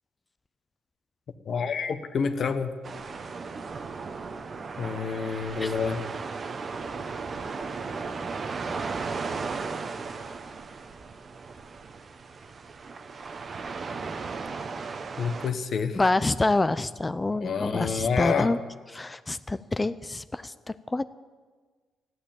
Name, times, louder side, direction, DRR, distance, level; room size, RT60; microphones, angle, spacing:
voice 1, 1.5-2.7 4.8-6.0 15.2-16.0 17.3-18.5, left 6 dB, 55° left, 8 dB, 1.2 m, -28 dB
sound 1, 2.8-15.5, right 4 dB, 45° right, 1.1 m, -36 dB
voice 2, 15.9-18.6 18.9-21.0, left 2 dB, 20° left, 14 dB, 0.5 m, -27 dB
14.0 x 11.5 x 8.9 m, 1.4 s
cardioid pair, 90°, 0 cm